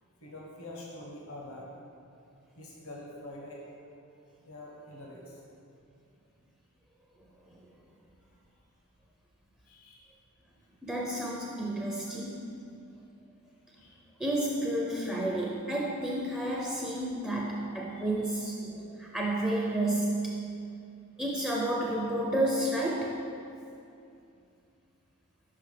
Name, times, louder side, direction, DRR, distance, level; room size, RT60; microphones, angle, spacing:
voice 1, 0.2-1.7 2.5-3.6 4.4-5.4 9.7-10.1 11.8-11.9 13.8-14.0 17.9-18.3, left 1 dB, 80° left, -3 dB, 0.9 m, -46 dB
voice 2, 10.8-12.5 14.2-20.5 21.2-23.2, right 1 dB, 5° right, -3 dB, 0.4 m, -31 dB
5.7 x 5.4 x 3.3 m, 2.5 s
head